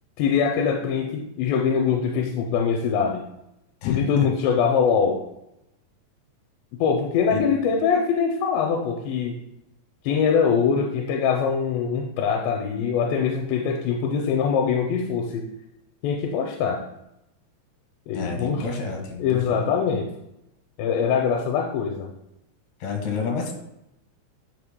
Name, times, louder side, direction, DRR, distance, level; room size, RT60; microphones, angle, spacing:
voice 1, 0.2-3.2 3.8-5.2 6.8-9.4 10.0-15.5 16.0-16.8 18.1-18.7 19.2-20.1 20.8-22.1, left 6 dB, 85° left, 1 dB, 2.9 m, -23 dB
voice 2, 3.8-4.3 7.3-7.7 18.1-19.6 22.8-23.5, left 5 dB, 70° left, 1 dB, 3.5 m, -29 dB
11.0 x 6.3 x 2.2 m, 0.86 s
omnidirectional pair, 5.0 m